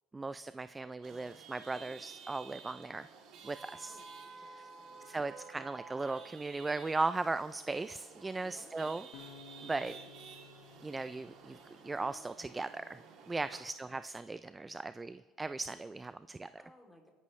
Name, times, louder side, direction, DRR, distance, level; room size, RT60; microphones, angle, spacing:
voice 1, 0.1-3.1 3.4-4.0 4.5-4.6 5.1-9.1 9.6-9.9 10.8-11.6 11.8-13.0 13.3-16.5, right 3 dB, 15° right, 13 dB, 0.3 m, -37 dB
Chatter / Vehicle horn car horn honking / Traffic noise roadway noise, 1.0-13.6, right 5 dB, 55° right, 2.7 m, -52 dB
voice 2, 3.8-4.1 4.4-5.2 8.4-9.0 9.8-10.2 13.4-13.7 16.6-17.1, left 1 dB, 5° left, 1 dB, 2.9 m, -61 dB
sound 1, 9.1-12.3, left 7 dB, 70° left, 1.2 m, -56 dB
24.5 x 11.0 x 3.2 m, 1.4 s
cardioid pair, 130°, 0 cm